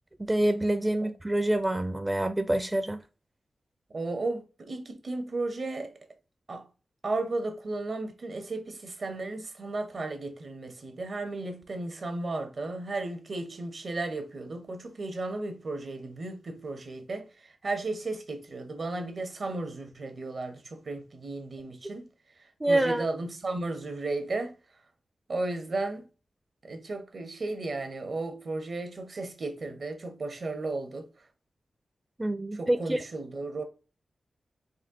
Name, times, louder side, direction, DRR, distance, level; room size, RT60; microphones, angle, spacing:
voice 1, 0.2-3.0 22.6-23.1 32.2-33.0, right 1 dB, 20° right, 0.4 m, -26 dB
voice 2, 3.9-5.9 6.5-6.7 7.0-22.1 22.7-24.5 25.3-26.1 26.6-31.1 32.6-33.6, right 2 dB, 65° right, 1.0 m, -34 dB
4.3 x 2.3 x 3.7 m
cardioid pair, 45°, 0 cm